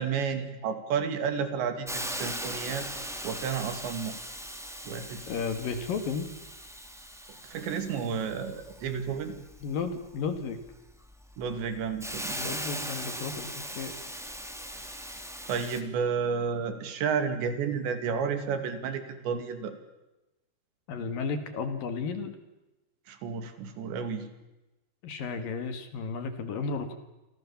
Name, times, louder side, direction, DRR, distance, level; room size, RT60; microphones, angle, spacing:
voice 1, 0.0-4.1 4.8-5.2 7.4-9.3 11.4-12.6 14.8-15.0 15.5-19.7 23.1-24.3, right 6 dB, 80° right, 9 dB, 4.7 m, -31 dB
Hiss, 1.9-15.8, equal, ahead, 0.9 m, -39 dB
voice 2, 5.3-6.3 9.6-10.6 12.3-13.9 20.9-22.4 25.0-26.9, left 5 dB, 60° left, 9 dB, 3.3 m, -33 dB
28.5 x 24.0 x 7.2 m, 1.0 s
omnidirectional pair, 5.0 m